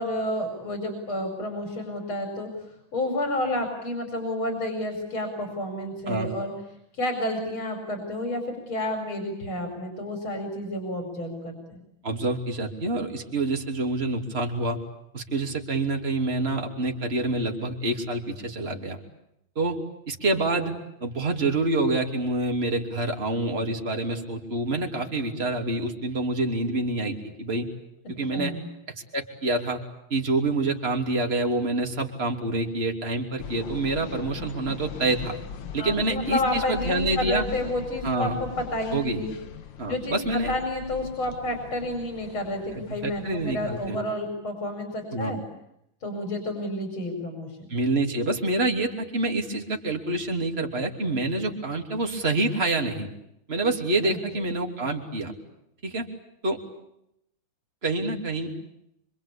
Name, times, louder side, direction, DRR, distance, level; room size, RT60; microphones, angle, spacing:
voice 1, 0.0-2.5 2.9-6.5 6.9-11.8 28.3-28.6 35.8-39.3 39.9-45.4 46.0-47.7 54.0-54.2, left 1 dB, 80° left, 4 dB, 6.0 m, -30 dB
voice 2, 12.0-14.8 15.1-19.0 19.6-19.8 20.1-20.7 21.0-27.7 28.1-28.5 29.1-29.8 30.1-35.4 35.7-37.4 38.0-38.4 38.9-39.2 39.8-40.5 42.7-44.0 45.1-45.3 47.7-53.1 53.5-55.3 55.8-56.1 56.4-56.6 57.8-58.5, right 2 dB, 30° right, 2 dB, 3.3 m, -27 dB
sound 1, 33.4-43.9, left 8 dB, 65° left, 2.0 m, -40 dB
26.0 x 26.0 x 8.6 m, 0.79 s
omnidirectional pair, 2.2 m